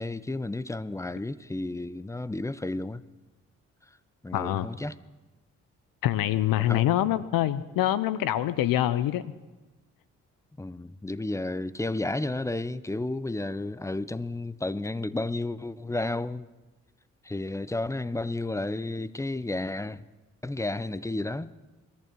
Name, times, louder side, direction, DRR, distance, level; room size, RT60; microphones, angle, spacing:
voice 1, 0.0-3.0 4.2-5.0 6.6-6.8 10.6-16.5 17.2-20.0 20.4-21.5, left 2 dB, 10° left, 0.6 m, -32 dB
voice 2, 4.3-4.7 6.0-9.2, left 13 dB, 70° left, 0.7 m, -25 dB
22.0 x 14.0 x 4.6 m
hypercardioid pair, 40°, 36 cm